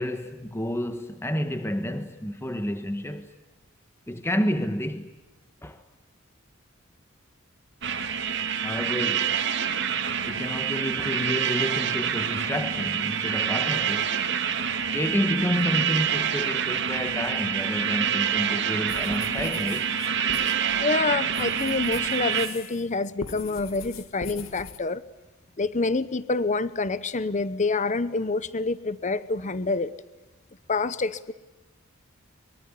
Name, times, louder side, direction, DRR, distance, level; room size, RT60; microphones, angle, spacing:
voice 1, 0.0-3.3 4.1-5.2 5.6-5.8 8.6-9.5 10.2-14.2 14.9-20.0, equal, 10° left, 1.2 m, -30 dB
sound 1, 7.8-22.5, right 8 dB, 60° right, 2.4 m, -27 dB
sound 2, 18.9-22.9 23.2-24.8, left 4 dB, 75° left, 2.0 m, -42 dB
voice 2, 20.8-25.0 25.6-29.9 30.7-31.3, left 3 dB, 35° left, 0.8 m, -27 dB
24.0 x 23.5 x 9.9 m
head